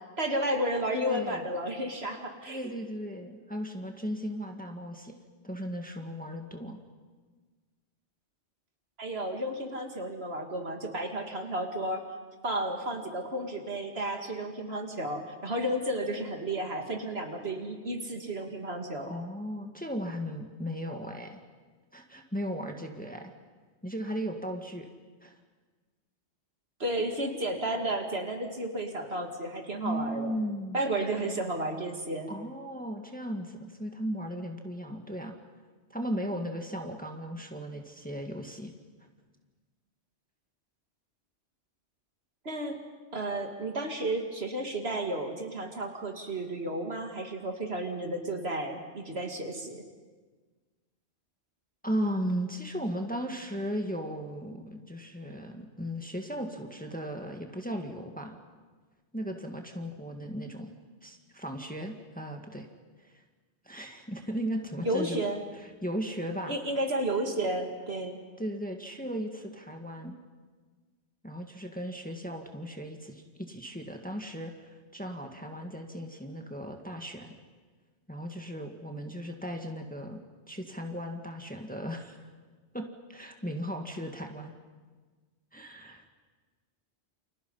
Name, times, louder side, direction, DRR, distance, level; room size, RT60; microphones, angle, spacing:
voice 1, 0.0-2.6 9.0-12.0 12.4-19.1 26.8-30.4 30.7-32.3 42.4-42.8 43.1-49.8 64.8-65.4 66.5-68.2, right 1 dB, 60° right, 3 dB, 2.7 m, -32 dB
voice 2, 0.9-1.4 2.5-5.1 5.4-6.8 19.1-21.4 21.9-23.3 23.8-24.9 25.2-25.3 29.8-31.4 32.3-35.3 35.9-38.7 51.8-58.4 59.1-60.7 61.0-62.7 63.0-63.1 63.7-65.2 65.8-66.6 68.4-70.2 71.2-77.3 78.1-80.2 80.5-82.3 82.7-84.5 85.5-86.1, equal, 5° left, 3 dB, 1.8 m, -36 dB
29.5 x 27.5 x 5.6 m, 1.4 s
omnidirectional pair, 1.2 m